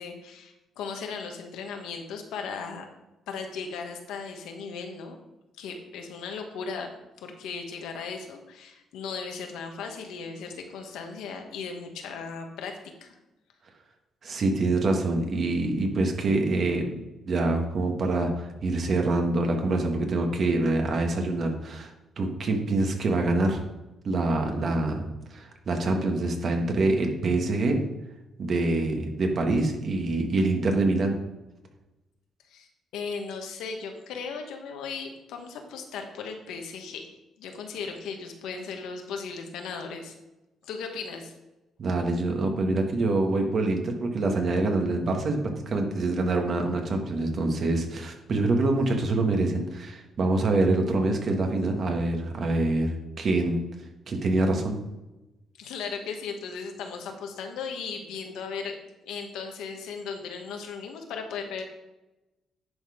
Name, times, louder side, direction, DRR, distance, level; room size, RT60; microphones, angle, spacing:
voice 1, 0.0-2.8 3.3-5.2 5.6-6.9 7.2-12.7 13.0-13.1 32.5-37.1 37.4-40.1 40.6-41.3 55.6-58.7 59.0-61.6, left 5 dB, 90° left, 4 dB, 1.3 m, -37 dB
voice 2, 14.2-16.9 17.2-21.9 22.2-23.6 24.0-27.8 28.4-31.2 41.8-45.4 45.6-53.6 54.1-54.7, right 2 dB, 50° right, 3 dB, 1.7 m, -25 dB
10.5 x 4.3 x 5.0 m, 1.0 s
cardioid pair, 90°, 0 cm